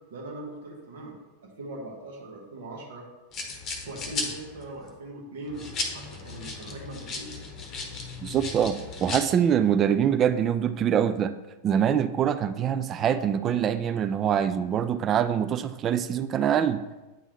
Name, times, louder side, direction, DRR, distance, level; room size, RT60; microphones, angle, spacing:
voice 1, 0.1-1.2 1.4-3.1 3.9-7.4, right 2 dB, 60° right, -1 dB, 1.4 m, -40 dB
sound 1, 3.3-4.9 5.5-9.2, left 3 dB, 30° left, 0.9 m, -35 dB
voice 2, 8.2-11.3 11.6-16.8, right 9 dB, 30° right, 11 dB, 0.3 m, -24 dB
9.0 x 3.6 x 3.2 m, 1.1 s
figure-of-eight pair, 90°, 0 cm